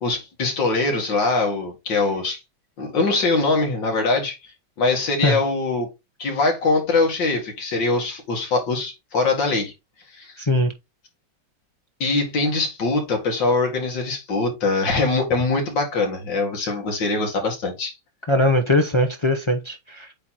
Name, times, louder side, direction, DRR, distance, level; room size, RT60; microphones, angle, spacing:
voice 1, 0.0-2.4 2.8-4.4 4.8-5.9 6.2-9.7 10.1-10.3 12.0-17.9, left 3 dB, 85° left, 2.7 m, -22 dB
voice 2, 10.4-10.7 18.3-20.1, left 1 dB, 40° left, 0.4 m, -20 dB
8.2 x 3.0 x 4.0 m
omnidirectional pair, 1.9 m